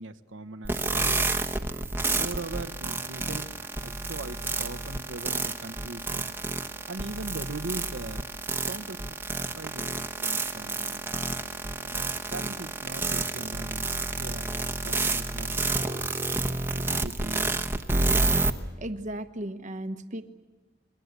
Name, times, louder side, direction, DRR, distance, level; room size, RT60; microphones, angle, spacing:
voice 1, 0.0-1.4 2.1-3.5 3.8-6.4 6.9-8.2 8.6-9.1 9.6-11.0 11.8-14.5 14.8-16.0 16.7-18.4, right 2 dB, 75° right, 7 dB, 1.1 m, -40 dB
sound 1, 0.6-18.5, right 3 dB, 10° right, 1.1 m, -29 dB
voice 2, 18.8-20.2, right 1 dB, 40° right, 8 dB, 1.1 m, -35 dB
28.5 x 23.0 x 8.1 m, 1.2 s
head